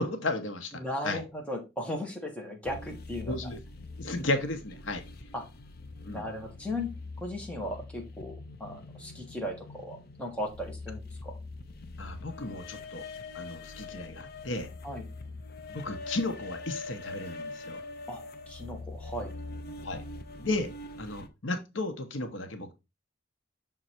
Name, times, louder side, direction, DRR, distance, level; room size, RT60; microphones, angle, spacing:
voice 1, 0.0-0.7 1.0-1.2 3.2-3.6 4.0-5.0 6.0-6.3 12.0-13.1 13.3-14.7 15.7-17.8 19.8-20.0 20.4-20.7 21.0-22.7, left 2 dB, 75° left, 1.0 m, -34 dB
voice 2, 0.7-3.4 5.3-5.4 6.1-6.9 7.2-8.3 8.6-11.4 14.8-15.0 18.1-19.3, left 1 dB, 5° left, 1.4 m, -37 dB
sound 1, 2.7-21.3, left 3 dB, 50° left, 0.7 m, -43 dB
6.4 x 3.8 x 4.3 m
head